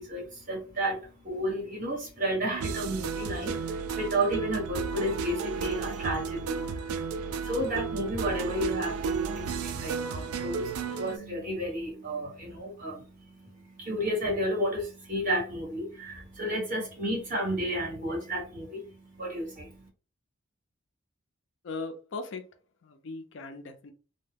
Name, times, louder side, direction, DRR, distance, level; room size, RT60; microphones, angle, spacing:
voice 1, 0.0-7.0 7.4-19.8, equal, 40° right, -3 dB, 1.3 m, -32 dB
sound 1, 2.5-11.2, right 5 dB, 90° right, 0.3 m, -33 dB
voice 2, 21.6-22.4 22.8-23.9, left 3 dB, 60° left, 7 dB, 0.4 m, -38 dB
2.2 x 2.1 x 3.2 m, 0.35 s
head